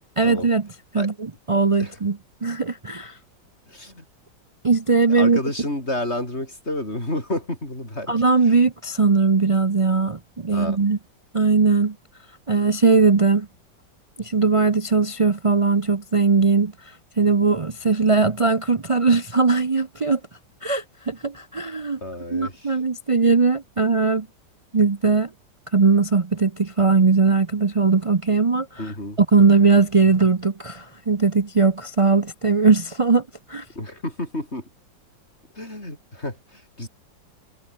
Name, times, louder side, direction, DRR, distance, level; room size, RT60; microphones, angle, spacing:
voice 1, 0.2-0.7 0.9-3.2 4.6-5.4 8.1-11.0 11.3-11.9 12.5-13.5 14.2-20.2 20.6-22.0 22.3-24.3 24.7-25.3 25.7-28.9 29.2-33.2 33.5-33.6, right 4 dB, 55° right, 0.3 m, -19 dB
voice 2, 3.7-4.0 5.1-8.1 10.5-10.8 22.0-22.7 28.8-29.2 33.7-34.7 35.5-36.9, left 1 dB, 35° left, 8.1 m, -30 dB
omnidirectional pair, 2.0 m